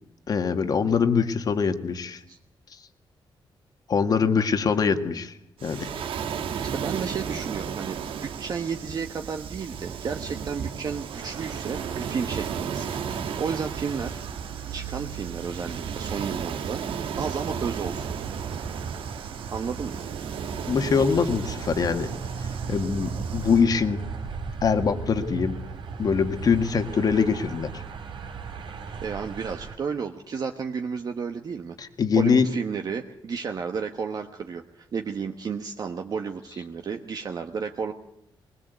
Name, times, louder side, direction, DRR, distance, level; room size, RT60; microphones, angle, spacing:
voice 1, 0.3-2.2 3.9-5.3 5.6-5.9 20.7-22.1 22.4-24.0 24.6-25.5 26.0-27.8 31.8-32.5, left 6 dB, 45° left, 7 dB, 1.8 m, -23 dB
Waves surf, 5.6-23.6, right 7 dB, 85° right, 1.5 m, -34 dB
voice 2, 6.7-14.2 14.7-16.8 17.1-18.1 19.5-20.0 29.0-31.8 32.2-37.9, right 6 dB, 45° right, 5 dB, 1.2 m, -32 dB
sound 1, 11.1-29.8, right 5 dB, 70° right, 3.4 m, -37 dB
21.0 x 20.5 x 8.1 m, 0.75 s
wide cardioid pair, 150°, 9 cm